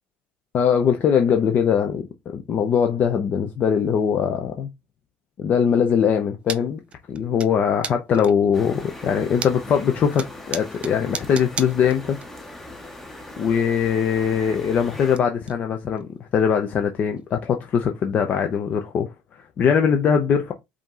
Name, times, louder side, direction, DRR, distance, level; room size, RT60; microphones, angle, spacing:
voice 1, 0.5-4.7 5.4-6.8 7.1-12.2 13.4-20.5, left 7 dB, 35° left, 0.6 m, -21 dB
sound 1, 6.5-6.6 6.9-7.5 7.8-8.5 9.0-9.8 10.1-12.3 12.5-12.6 13.9-14.0 14.3-15.2 15.4-15.5 16.0-16.1 16.5-16.6 17.2-17.3 18.5-18.6, right 6 dB, 25° right, 0.5 m, -33 dB
sound 2, 8.5-15.2, left 1 dB, 5° left, 0.8 m, -40 dB
5.0 x 2.8 x 3.7 m
cardioid pair, 155°, 5 cm